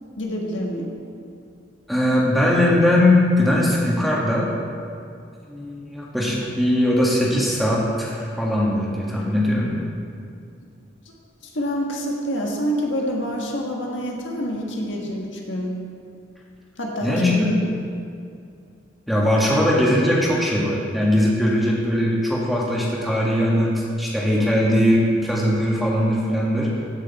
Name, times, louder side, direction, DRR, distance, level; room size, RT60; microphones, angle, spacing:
voice 1, 0.2-0.9 9.1-9.3 11.4-15.7 16.8-17.3, equal, 75° left, -1 dB, 1.6 m, -27 dB
voice 2, 1.9-4.5 5.5-9.7 17.0-17.5 19.1-26.7, left 1 dB, ahead, -5 dB, 1.8 m, -20 dB
14.5 x 6.5 x 4.2 m, 2.4 s
head